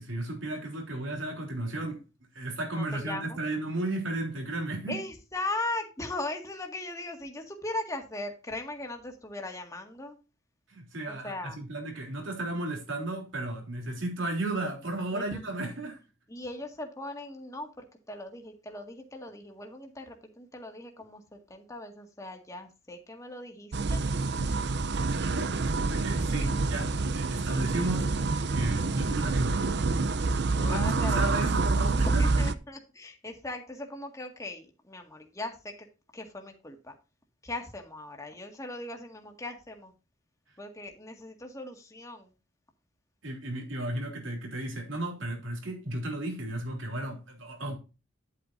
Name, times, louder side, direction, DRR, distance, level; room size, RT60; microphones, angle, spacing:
voice 1, 0.0-2.0 2.3-5.0 10.7-16.0 24.4-24.7 25.1-29.7 30.2-32.5 43.2-47.8, right 2 dB, 75° right, 3.5 m, -34 dB
voice 2, 2.8-3.4 4.9-10.2 11.2-11.6 15.1-15.4 16.3-24.0 30.7-31.2 32.0-35.9 36.1-36.9 37.4-39.9 40.6-42.3, left 2 dB, 15° left, 1.8 m, -39 dB
sound 1, 23.7-32.5, right 3 dB, 60° right, 0.6 m, -27 dB
10.5 x 8.3 x 2.6 m
head